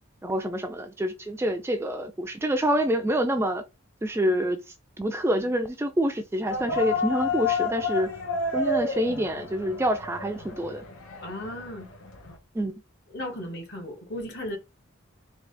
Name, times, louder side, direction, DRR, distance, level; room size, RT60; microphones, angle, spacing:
voice 1, 0.2-3.6 4.0-4.6 5.0-8.1 8.5-10.8 12.6-12.8, equal, 10° right, 0.3 m, -27 dB
sound 1, 6.5-12.4, left 3 dB, 90° left, 1.0 m, -31 dB
voice 2, 11.2-11.9 13.1-14.6, left 1 dB, 55° left, 1.4 m, -35 dB
3.9 x 2.4 x 3.3 m
head